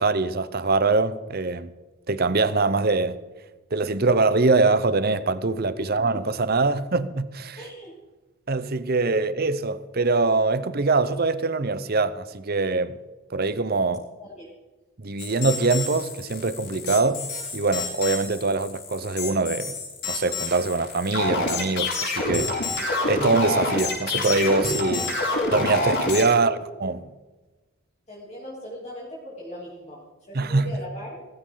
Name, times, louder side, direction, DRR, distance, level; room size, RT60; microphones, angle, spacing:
voice 1, 0.0-1.7 2.1-3.1 3.7-7.6 8.5-13.0 13.3-14.0 15.0-17.3 17.5-19.7 20.1-25.2 25.5-27.0 30.3-30.7, right 3 dB, 45° right, 0.8 m, -23 dB
voice 2, 5.8-6.2 7.6-7.9 14.2-14.5 26.3-26.7 28.1-31.3, equal, 30° left, 3.2 m, -39 dB
sound 1, 15.2-26.2, left 2 dB, 50° left, 5.6 m, -27 dB
17.0 x 15.5 x 3.9 m
head